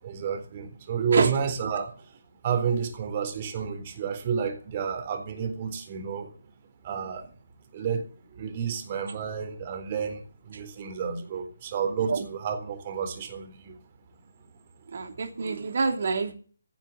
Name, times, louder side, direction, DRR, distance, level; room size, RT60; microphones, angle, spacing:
voice 1, 0.0-6.3 6.8-7.3 7.7-13.8 15.3-15.4, right 6 dB, 35° right, 5 dB, 3.9 m, -31 dB
voice 2, 14.9-16.3, right 4 dB, 55° right, 4 dB, 3.0 m, -26 dB
16.5 x 7.3 x 7.3 m, 0.41 s
figure-of-eight pair, 150°, 0 cm